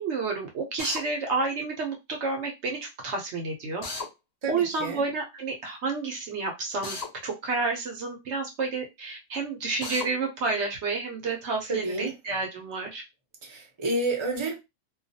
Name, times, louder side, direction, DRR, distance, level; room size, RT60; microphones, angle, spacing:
voice 1, 0.0-3.8 4.5-7.0 7.2-13.0, right 4 dB, 60° right, 0.8 m, -30 dB
Drill, 0.8-1.0 3.8-4.1 6.8-7.1 9.8-10.1, left 3 dB, 85° left, 0.3 m, -34 dB
voice 2, 4.4-5.0 11.7-12.1 13.4-14.6, right 2 dB, 30° right, 0.5 m, -30 dB
2.3 x 2.3 x 2.6 m
omnidirectional pair, 1.5 m